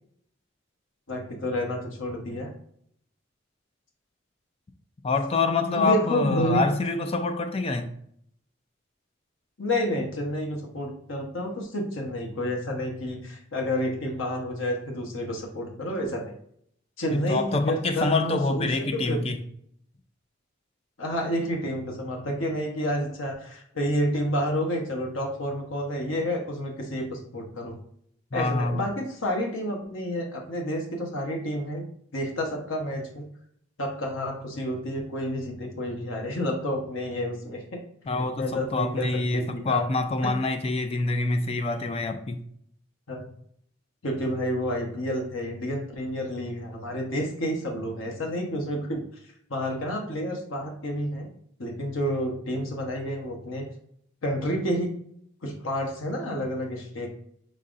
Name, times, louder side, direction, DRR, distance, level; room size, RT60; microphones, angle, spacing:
voice 1, 1.1-2.5 5.7-6.6 9.6-16.3 17.0-19.2 21.0-27.8 28.3-31.8 32.1-33.3 33.8-37.8 38.4-39.1 39.3-39.9 43.1-43.3 44.0-49.0 49.5-51.3 51.6-53.7 54.2-54.9 55.4-57.1, equal, 90° left, 1.1 m, -29 dB
voice 2, 5.0-7.9 17.1-19.4 28.3-28.9 38.1-42.4, left 3 dB, 30° left, 0.4 m, -26 dB
5.4 x 3.7 x 2.5 m
head